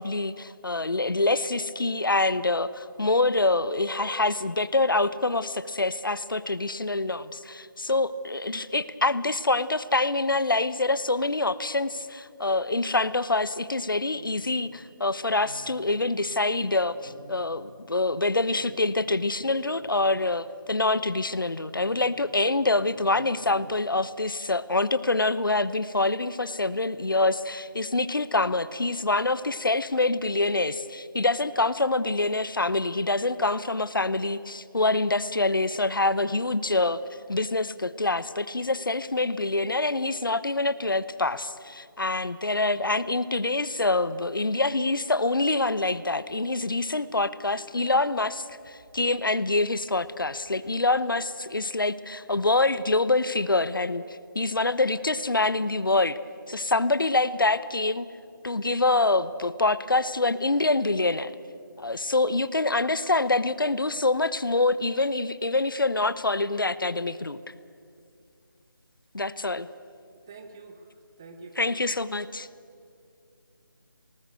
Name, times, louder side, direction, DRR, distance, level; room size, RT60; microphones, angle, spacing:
voice 1, 0.0-37.0 37.3-56.2 56.5-58.1 58.4-61.3 61.8-67.5 69.1-69.7 71.6-72.5, left 2 dB, 70° left, 16 dB, 1.0 m, -26 dB
sound 1, 14.1-20.2 20.6-23.6, equal, 35° left, 4.2 m, -52 dB
voice 2, 70.3-71.9, right 3 dB, 10° right, 6 dB, 0.5 m, -47 dB
19.5 x 19.0 x 8.0 m, 2.3 s
figure-of-eight pair, 160°, 12 cm